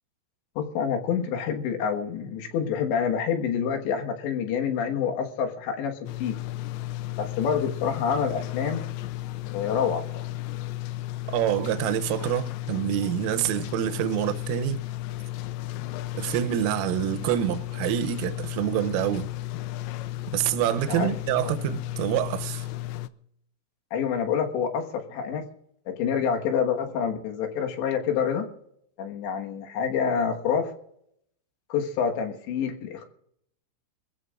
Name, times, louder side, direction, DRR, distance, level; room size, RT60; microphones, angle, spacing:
voice 1, 0.6-6.4 7.2-8.8 9.5-10.3 20.9-21.1 21.4-21.5 23.9-25.4 25.9-28.5 29.0-30.7 31.7-33.0, left 7 dB, 70° left, 3.5 m, -27 dB
sound 1, 6.1-23.1, left 16 dB, 90° left, 2.5 m, -34 dB
voice 2, 11.3-14.8 16.1-19.3 20.3-22.6, right 13 dB, 85° right, 3.3 m, -26 dB
25.0 x 15.0 x 2.5 m
omnidirectional pair, 5.8 m